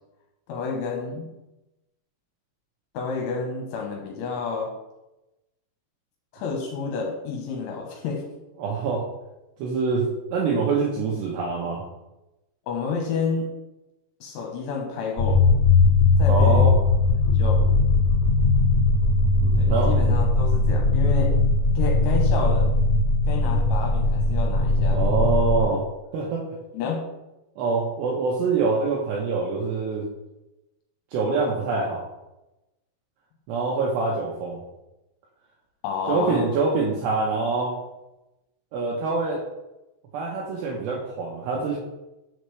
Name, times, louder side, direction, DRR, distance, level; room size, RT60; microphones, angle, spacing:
voice 1, 0.5-1.3 2.9-4.7 6.3-8.2 12.7-13.5 14.2-15.4 16.2-16.7 17.3-17.6 19.5-21.3 21.7-22.7 23.3-25.0 26.7-27.0 35.8-36.6, left 5 dB, 75° left, 0 dB, 3.1 m, -30 dB
voice 2, 8.6-9.1 9.6-11.8 16.3-16.7 19.4-20.0 24.9-25.9 26.1-26.5 27.6-30.1 31.1-32.0 33.5-34.6 36.1-37.8 38.7-39.4 40.1-41.8, right 4 dB, 80° right, -3 dB, 2.4 m, -25 dB
sound 1, 15.2-25.6, left 3 dB, 25° left, 1.7 m, -19 dB
7.1 x 6.7 x 3.2 m, 0.97 s
omnidirectional pair, 6.0 m